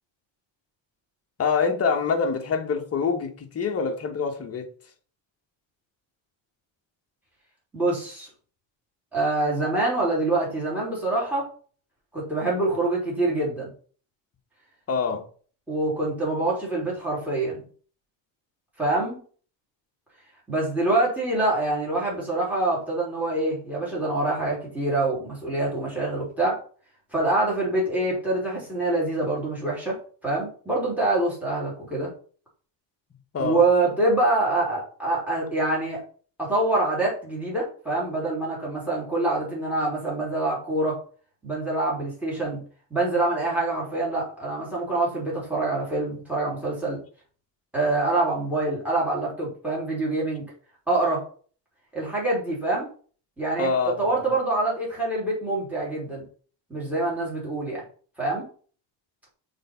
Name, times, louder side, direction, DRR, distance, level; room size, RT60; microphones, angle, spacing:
voice 1, 1.4-4.7 14.9-15.3 33.3-33.6 53.6-54.2, left 5 dB, 30° left, 1.1 m, -25 dB
voice 2, 7.7-8.3 9.1-11.4 12.1-13.7 15.7-17.6 18.8-19.2 20.5-26.6 27.1-30.0 30.2-32.1 33.4-36.0 36.4-41.0 41.4-42.6 42.9-47.0 47.7-50.4 50.9-51.2 51.9-52.9 53.4-53.7 54.0-56.2 56.7-57.8 58.2-58.4, right 2 dB, 5° right, 3.2 m, -25 dB
6.5 x 3.6 x 5.5 m
cardioid pair, 140°, 47 cm